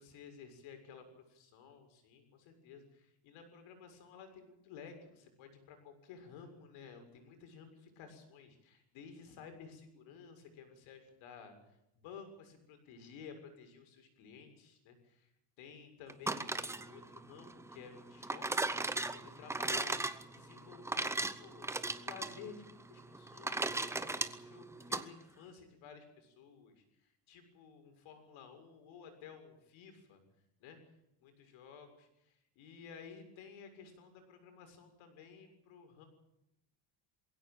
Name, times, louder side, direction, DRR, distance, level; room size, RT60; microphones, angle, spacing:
voice 1, 0.0-11.6 12.0-15.3 15.6-30.2 30.6-30.9 31.2-36.0, left 6 dB, 80° left, 6 dB, 6.9 m, -54 dB
sound 1, 16.1-25.0, right 2 dB, 5° right, 0.7 m, -37 dB
22.5 x 16.5 x 9.1 m, 0.84 s
cardioid pair, 180°, 47 cm